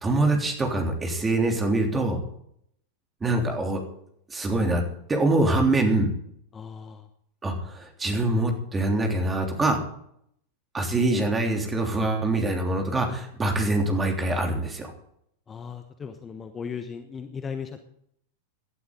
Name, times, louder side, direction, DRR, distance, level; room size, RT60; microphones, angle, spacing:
voice 1, 0.0-2.2 3.2-3.8 4.3-4.8 5.1-6.1 7.4-9.8 10.7-14.9, right 2 dB, 15° right, 3 dB, 3.3 m, -24 dB
voice 2, 6.5-7.1 15.5-17.8, left 6 dB, 20° left, 7 dB, 1.1 m, -37 dB
18.0 x 12.0 x 4.0 m, 0.69 s
figure-of-eight pair, 90°, 0 cm